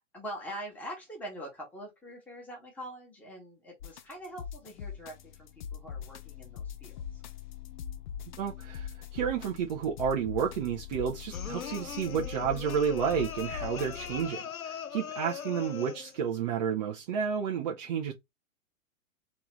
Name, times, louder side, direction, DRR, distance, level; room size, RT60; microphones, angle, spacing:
voice 1, 0.1-7.2, equal, 5° left, 1.4 m, -44 dB
sound 1, 3.8-14.3, left 8 dB, 35° left, 0.5 m, -42 dB
voice 2, 8.4-18.1, right 7 dB, 30° right, 0.6 m, -31 dB
sound 2, 11.3-16.2, left 8 dB, 80° left, 0.6 m, -40 dB
3.4 x 3.0 x 3.0 m
figure-of-eight pair, 110°, 41 cm